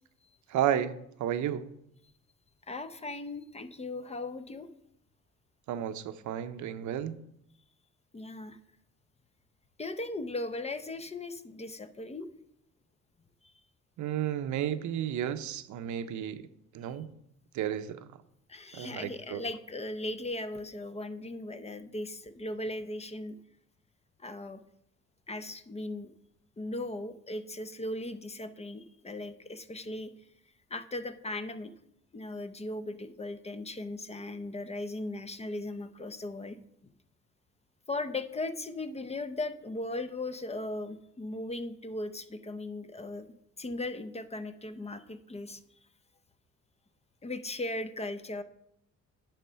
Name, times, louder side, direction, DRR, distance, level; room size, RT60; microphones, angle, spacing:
voice 1, 0.5-0.9 1.2-1.6 5.7-7.2 14.0-16.4 16.7-17.1 17.5-18.1 18.7-19.4, right 10 dB, 75° right, 12 dB, 0.6 m, -32 dB
voice 2, 2.7-4.7 8.1-8.6 9.8-12.3 18.5-23.4 24.2-24.6 25.3-26.1 26.6-30.1 30.7-31.7 32.1-36.9 37.9-43.3 43.6-45.6 47.2-48.4, left 2 dB, 20° left, 11 dB, 0.6 m, -38 dB
10.0 x 3.6 x 5.6 m, 0.76 s
cardioid pair, 90°, 30 cm